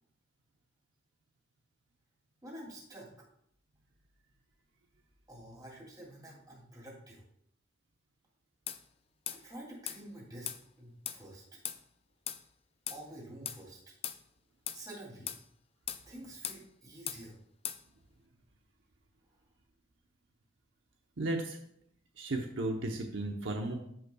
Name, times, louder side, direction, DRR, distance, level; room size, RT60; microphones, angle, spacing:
voice 1, 2.4-3.3 5.3-7.2 9.3-10.5 10.8-11.4 12.9-13.8 14.7-15.3 16.0-17.4, right 1 dB, 20° right, -3 dB, 2.9 m, -49 dB
sound 1, 8.7-8.8 9.3-9.4 9.9-10.0 10.5-10.6 11.1-11.2 11.7-11.8 12.3-12.4 12.9-13.0 13.5-13.6 14.0-14.2 14.7-14.8 15.3-15.4 15.9-16.0 16.4-16.6 17.1-17.2 17.7-17.8, left 10 dB, 30° left, 0.4 m, -38 dB
voice 2, 21.2-21.6 22.2-23.8, right 2 dB, 75° right, 2 dB, 0.9 m, -34 dB
14.5 x 5.4 x 2.3 m, 0.72 s
head